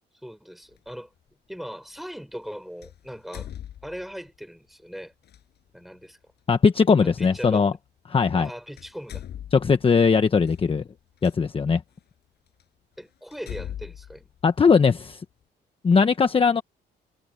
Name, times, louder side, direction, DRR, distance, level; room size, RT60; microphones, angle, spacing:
voice 1, 0.2-1.1 1.5-3.5 3.8-5.1 5.7-6.2 7.0-7.7 8.3-9.2 13.0-14.3, equal, ahead, 6.4 m, -39 dB
sound 1, 0.7-0.9 2.8-4.3 5.2-5.4 7.3-7.4 8.3-8.5 8.7-11.3 12.0-12.1 12.6-12.7 13.3-15.1, left 10 dB, 65° left, 7.9 m, -40 dB
voice 2, 6.5-7.7 8.1-8.5 9.5-10.8 11.2-11.8 14.4-15.2 15.8-16.6, left 5 dB, 30° left, 1.2 m, -19 dB
cardioid pair, 110°, 18 cm